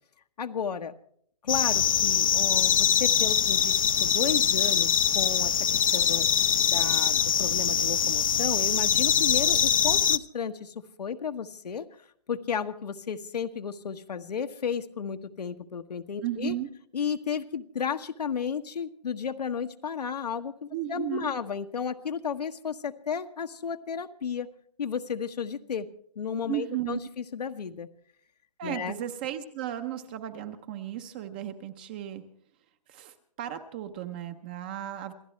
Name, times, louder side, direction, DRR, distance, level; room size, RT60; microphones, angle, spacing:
voice 1, 0.4-0.9 1.4-6.3 6.6-11.8 12.3-16.5 16.9-24.5 24.8-25.9 26.1-27.9 28.6-28.9, left 7 dB, 80° left, 6 dB, 1.4 m, -33 dB
sound 1, 1.5-10.2, left 8 dB, 55° left, 0.7 m, -23 dB
voice 2, 16.2-16.7 20.7-21.3 26.5-27.0 28.6-32.2 32.9-35.1, right 12 dB, 15° right, 8 dB, 0.6 m, -35 dB
27.5 x 15.5 x 3.2 m, 0.63 s
hypercardioid pair, 170°, 20 cm